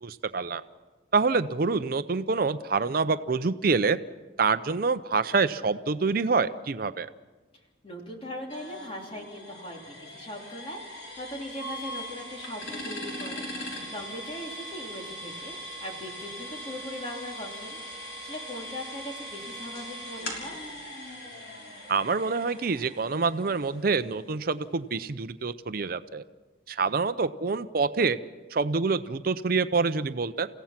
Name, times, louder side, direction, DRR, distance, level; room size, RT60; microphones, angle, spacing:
voice 1, 0.0-0.6 1.1-4.0 4.4-7.1 21.9-26.2 26.7-28.2 28.5-30.5, right 4 dB, 50° right, 11 dB, 0.6 m, -26 dB
voice 2, 7.8-20.6, left 1 dB, 30° left, 1 dB, 3.2 m, -40 dB
sound 1, 8.5-24.2, equal, 85° left, 6.0 m, -40 dB
30.0 x 16.0 x 5.9 m, 1.2 s
head